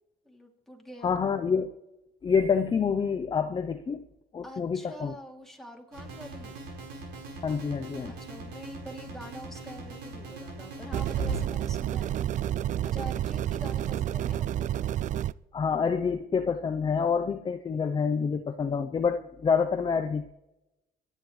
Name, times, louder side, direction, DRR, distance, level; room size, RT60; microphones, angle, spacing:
voice 1, 0.2-1.2 4.4-6.6 8.1-12.3 12.8-14.8, equal, ahead, 0 dB, 2.8 m, -45 dB
voice 2, 1.0-1.7 2.2-4.0 4.3-5.1 7.4-8.2 15.5-20.3, left 6 dB, 30° left, 7 dB, 0.7 m, -27 dB
sound 1, 5.9-11.4, right 2 dB, 80° right, 4.9 m, -40 dB
sound 2, 10.9-15.3, right 11 dB, 45° right, 0.4 m, -30 dB
25.5 x 10.0 x 3.3 m, 0.93 s
cardioid pair, 110°, 17 cm